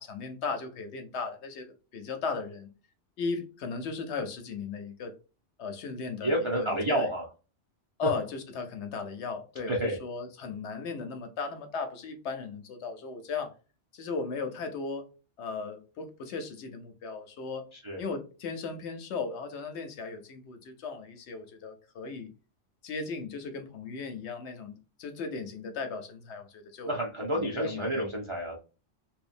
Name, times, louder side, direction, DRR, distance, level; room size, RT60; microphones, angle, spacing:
voice 1, 0.0-2.7 3.2-5.1 5.6-7.1 8.0-13.5 13.9-15.1 15.4-17.7 18.0-22.3 22.8-27.0 27.3-28.1, left 4 dB, 70° left, 0.8 m, -36 dB
voice 2, 6.2-7.3 9.7-10.0 17.8-18.0 26.9-28.6, right 1 dB, 45° right, 0.3 m, -29 dB
2.8 x 2.1 x 2.4 m
omnidirectional pair, 1.3 m